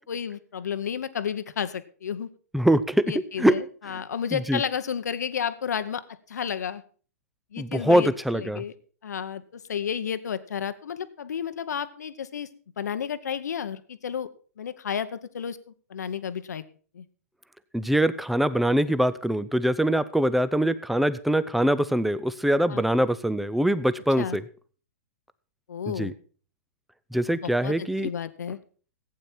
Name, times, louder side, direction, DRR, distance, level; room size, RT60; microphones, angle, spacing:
voice 1, 0.0-2.3 3.1-6.8 7.5-8.7 9.0-12.5 12.8-14.3 14.6-15.6 15.9-16.6 16.9-17.0 22.7-22.8 24.2-24.4 25.7-26.1 27.3-28.6, left 8 dB, 90° left, 12 dB, 0.9 m, -32 dB
voice 2, 2.5-3.1 3.4-3.6 4.3-4.6 7.6-8.6 17.7-24.4 25.9-26.1 27.1-28.1, right 1 dB, ahead, 15 dB, 0.5 m, -23 dB
15.0 x 8.8 x 4.4 m, 0.42 s
hypercardioid pair, 145°, 9 cm